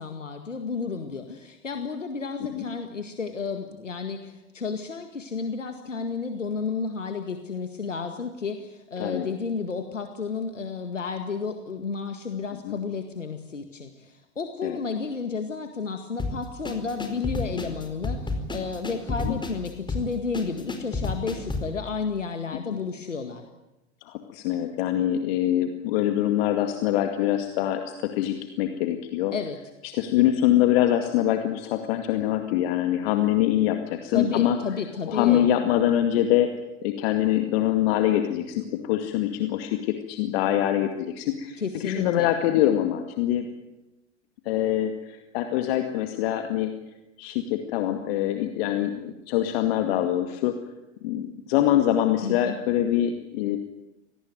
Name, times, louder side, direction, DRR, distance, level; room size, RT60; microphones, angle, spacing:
voice 1, 0.0-23.4 29.3-29.6 34.1-35.5 41.6-42.3 52.2-52.6, left 5 dB, 85° left, 6 dB, 2.0 m, -32 dB
sound 1, 16.2-21.7, left 3 dB, 10° left, 4.7 m, -31 dB
voice 2, 24.1-29.3 29.8-34.6 35.1-36.5 36.8-43.5 44.4-46.7 47.2-50.5 51.0-53.6, left 12 dB, 55° left, 6 dB, 2.2 m, -24 dB
25.0 x 19.0 x 9.3 m, 0.99 s
figure-of-eight pair, 85°, 37 cm